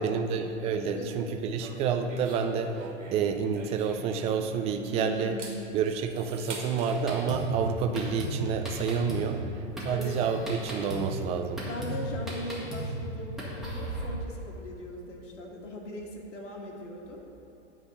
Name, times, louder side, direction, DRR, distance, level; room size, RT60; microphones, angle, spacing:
voice 1, 0.0-2.8 3.1-5.4 5.7-9.4 9.9-11.6, right 6 dB, 20° right, 6 dB, 0.3 m, -29 dB
sound 1, 1.5-4.8 5.2-6.9, right 3 dB, 80° right, 1.8 m, -44 dB
voice 2, 4.9-5.8 9.3-9.5 9.9-10.2 11.6-17.2, left 1 dB, 75° left, -2 dB, 1.7 m, -39 dB
Drum kit, 6.8-14.1, right 1 dB, ahead, 1.8 m, -36 dB
9.7 x 3.7 x 7.2 m, 3.0 s
hypercardioid pair, 110°, 37 cm